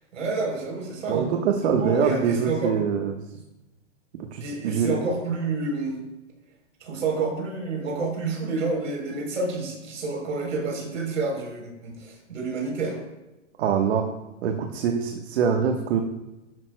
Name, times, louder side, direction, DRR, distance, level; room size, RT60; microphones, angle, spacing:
voice 1, 0.1-1.3 1.6-2.7 4.4-6.0 6.8-13.0, right 3 dB, 85° right, 0 dB, 3.8 m, -29 dB
voice 2, 1.1-3.1 4.3-4.9 13.6-14.1 14.4-16.0, right 7 dB, 60° right, 3 dB, 1.3 m, -24 dB
12.5 x 11.0 x 2.2 m, 1.0 s
hypercardioid pair, 130°, 37 cm